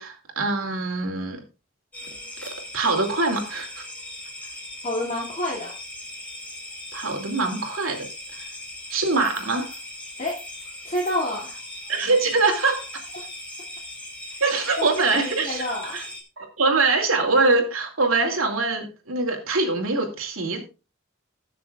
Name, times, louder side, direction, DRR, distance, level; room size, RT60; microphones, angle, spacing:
voice 1, 0.0-1.4 2.7-3.8 6.9-8.0 8.9-9.7 11.9-12.8 14.4-15.6 15.9-16.0 16.4-20.6, right 3 dB, 85° right, 2.7 m, -23 dB
sound 1, 1.9-16.2, left 1 dB, 5° left, 2.4 m, -39 dB
voice 2, 4.8-5.8 10.2-10.4 10.8-11.6 14.3-14.4 14.8-16.1, left 1 dB, 40° left, 2.5 m, -29 dB
20.0 x 6.8 x 2.4 m
head